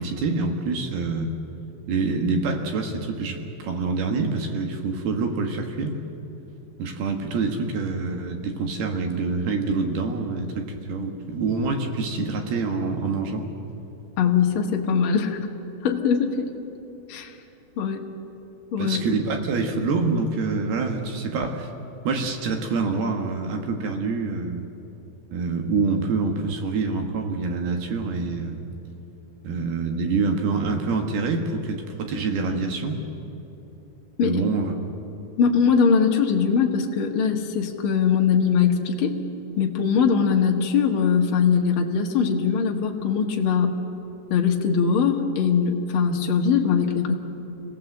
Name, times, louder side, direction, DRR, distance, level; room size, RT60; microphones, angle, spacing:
voice 1, 0.0-1.4 1.9-6.0 6.8-13.5 18.8-21.7 22.0-24.7 25.3-28.6 29.4-33.0 34.2-34.7, right 4 dB, 65° right, 4 dB, 3.1 m, -26 dB
voice 2, 14.2-15.4 15.8-16.5 17.1-17.3 17.8-18.0 18.7-19.2 34.2-34.4 35.4-39.2 39.6-43.8 44.3-47.1, left 6 dB, 85° left, 1 dB, 1.1 m, -21 dB
27.5 x 18.0 x 7.9 m, 3.0 s
omnidirectional pair, 5.1 m